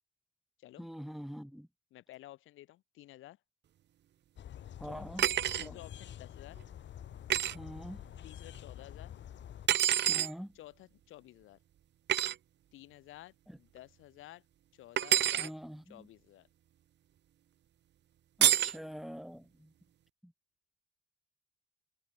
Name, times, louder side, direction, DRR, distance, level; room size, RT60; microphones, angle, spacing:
voice 1, 0.8-1.7 4.8-5.3 5.6-5.8 7.5-8.0 10.1-10.5 13.5-13.6 15.4-16.1 18.4-19.7 20.2-20.3, equal, ahead, 5.6 m, -44 dB
voice 2, 1.9-3.4 4.8-5.0 5.4-6.6 8.2-9.2 10.5-11.6 12.7-14.4 14.7-15.5 15.9-16.5, left 15 dB, 90° left, 4.3 m, -53 dB
sound 1, 4.4-9.7, left 10 dB, 65° left, 2.2 m, -48 dB
sound 2, 5.2-5.7 7.3-7.5 9.7-10.3 12.1-12.3 15.0-15.5 18.4-18.8, right 11 dB, 60° right, 0.8 m, -27 dB
cardioid pair, 90°, 20 cm